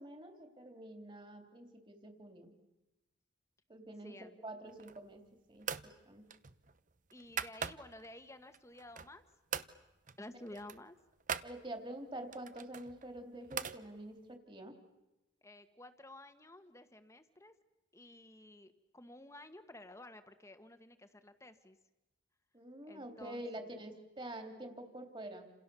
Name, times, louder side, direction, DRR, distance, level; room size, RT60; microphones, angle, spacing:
voice 1, 0.0-2.5 3.7-4.2 4.4-5.2 5.5-6.3 11.4-14.7 22.5-25.5, right 1 dB, 25° right, 6 dB, 3.2 m, -47 dB
voice 2, 4.0-4.4 7.1-9.2 10.2-11.0 15.4-17.5 17.9-21.8 22.9-23.7, left 1 dB, 15° left, 9 dB, 1.5 m, -53 dB
sound 1, 4.7-5.2 5.6-5.9 6.3-8.1 8.5-9.2 9.5-9.7 10.1-10.2 10.5-11.5 12.3-13.8, right 7 dB, 40° right, 0.9 m, -42 dB
29.5 x 27.5 x 7.0 m, 1.0 s
head